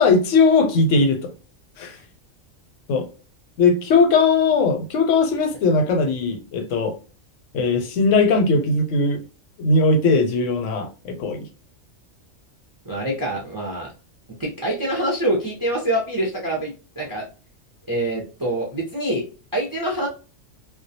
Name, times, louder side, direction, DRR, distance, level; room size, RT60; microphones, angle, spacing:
voice 1, 0.0-1.3 1.8-2.0 2.9-3.1 3.6-7.0 7.5-9.2 9.6-11.5, left 4 dB, 75° left, 0.9 m, -19 dB
voice 2, 12.8-13.9 14.4-17.2 17.9-19.3 19.5-20.1, right 1 dB, 35° right, 0.3 m, -25 dB
2.3 x 2.1 x 2.6 m
omnidirectional pair, 1.3 m